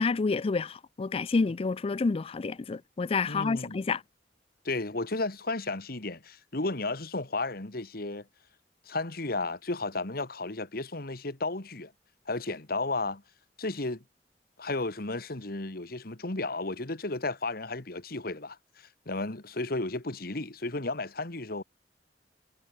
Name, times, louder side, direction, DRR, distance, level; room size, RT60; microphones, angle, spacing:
voice 1, 0.0-4.0, left 4 dB, 35° left, 0.4 m, -29 dB
voice 2, 3.3-3.8 4.6-8.3 8.9-11.9 12.3-13.2 13.6-14.0 14.6-21.6, left 2 dB, 60° left, 2.0 m, -33 dB
head